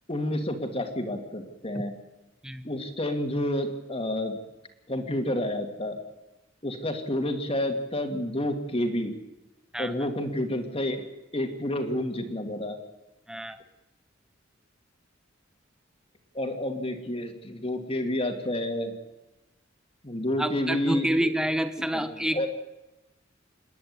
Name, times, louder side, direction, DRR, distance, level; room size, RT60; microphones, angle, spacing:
voice 1, 0.1-2.0 2.6-4.4 4.9-6.0 6.6-9.2 9.8-11.1 11.3-12.8 16.3-19.0 20.0-21.3 21.8-22.5, left 1 dB, 30° left, 5 dB, 2.4 m, -29 dB
voice 2, 13.3-13.6 20.4-22.5, right 1 dB, 5° right, 9 dB, 0.9 m, -28 dB
27.5 x 11.0 x 9.6 m, 1.0 s
head